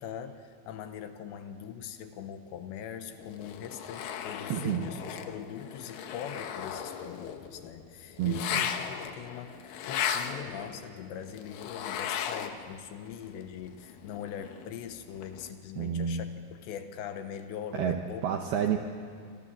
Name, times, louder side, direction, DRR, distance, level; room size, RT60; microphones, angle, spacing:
voice 1, 0.0-9.6 9.8-18.2, left 8 dB, 75° left, 8 dB, 2.9 m, -41 dB
sound 1, 3.2-12.8 13.1-15.5, left 8 dB, 90° left, 1.9 m, -37 dB
voice 2, 4.5-4.9 8.2-8.6 15.8-16.2 17.7-18.8, right 8 dB, 75° right, 4 dB, 2.3 m, -29 dB
28.0 x 26.0 x 7.5 m, 2.3 s
omnidirectional pair, 6.0 m